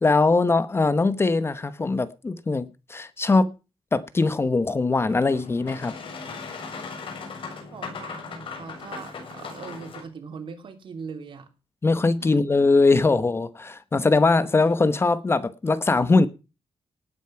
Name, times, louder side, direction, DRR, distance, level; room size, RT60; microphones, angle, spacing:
voice 1, 0.0-3.5 3.9-5.9 11.8-16.3, left 3 dB, 25° left, 1.0 m, -21 dB
Boat Water vehicle, 5.0-10.0, left 4 dB, 65° left, 7.4 m, -38 dB
voice 2, 7.7-11.5 12.2-12.3, right 5 dB, 60° right, 3.2 m, -40 dB
18.5 x 9.2 x 5.9 m
wide cardioid pair, 145°, 10 cm